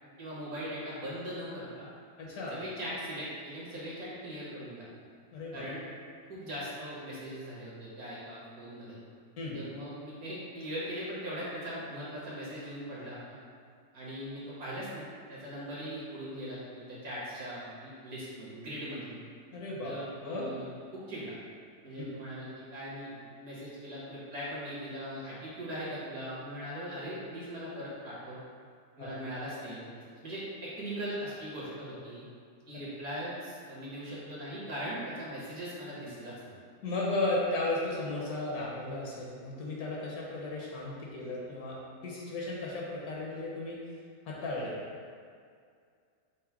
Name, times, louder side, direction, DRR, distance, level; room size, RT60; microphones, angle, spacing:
voice 1, 0.0-1.9 2.5-5.0 5.5-5.8 6.3-9.0 9.5-13.4 13.9-19.2 19.8-21.3 21.8-28.4 29.0-32.2 32.7-36.6, equal, 60° right, -8 dB, 1.6 m, -40 dB
voice 2, 2.2-2.6 5.3-5.7 9.4-9.6 19.5-20.5 22.0-22.1 29.0-29.1 36.8-41.8 42.0-43.8 44.3-44.8, left 2 dB, 65° left, -4 dB, 1.1 m, -35 dB
4.6 x 2.1 x 4.4 m, 2.2 s
omnidirectional pair, 1.8 m